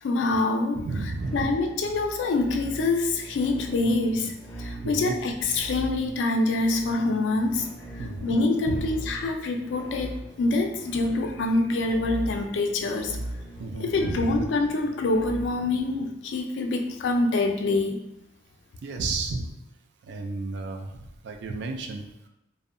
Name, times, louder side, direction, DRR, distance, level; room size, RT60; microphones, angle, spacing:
voice 1, 0.0-0.9 1.3-7.7 7.9-13.2 13.8-18.0, left 2 dB, 85° left, 4 dB, 0.4 m, -25 dB
voice 2, 0.7-1.5 4.8-5.2 8.0-8.4 8.7-8.9 13.6-14.4 18.8-19.5 20.0-22.0, right 3 dB, 70° right, 4 dB, 0.3 m, -32 dB
sound 1, 1.1-16.0, right 1 dB, 15° left, 0.5 m, -40 dB
2.6 x 2.0 x 2.5 m, 0.83 s
head